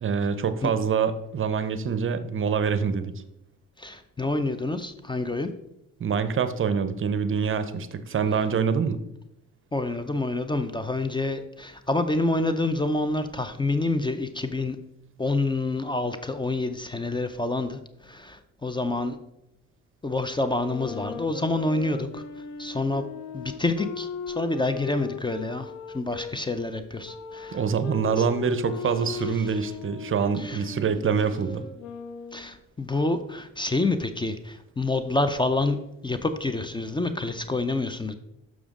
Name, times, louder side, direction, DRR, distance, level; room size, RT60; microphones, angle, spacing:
voice 1, 0.0-3.1 6.0-9.0 27.5-31.7, right 6 dB, 45° right, 11 dB, 0.7 m, -25 dB
voice 2, 3.8-5.5 9.7-14.8 15.2-19.2 20.0-22.2 22.6-23.0 23.3-27.6 28.2-28.3 30.3-30.6 32.3-35.8 36.0-38.1, left 2 dB, 15° left, 9 dB, 0.5 m, -27 dB
sound 1, 20.5-26.3 27.0-32.5, left 6 dB, 85° left, 0.8 m, -38 dB
6.9 x 6.1 x 3.7 m, 0.82 s
cardioid pair, 90°, 30 cm